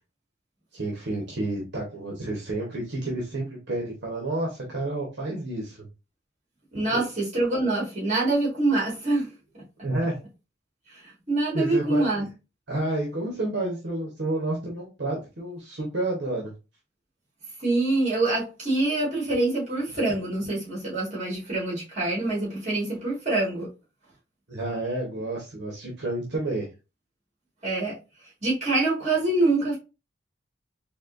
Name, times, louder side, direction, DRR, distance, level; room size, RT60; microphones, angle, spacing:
voice 1, 0.7-5.9 6.9-7.1 9.8-10.2 11.5-12.2 12.7-16.5 24.5-26.7, right 2 dB, 65° right, 1.1 m, -30 dB
voice 2, 6.7-9.3 10.9-12.3 17.6-23.7 27.6-28.0 28.4-29.8, right 2 dB, 40° right, 1.9 m, -25 dB
4.2 x 2.7 x 2.6 m
head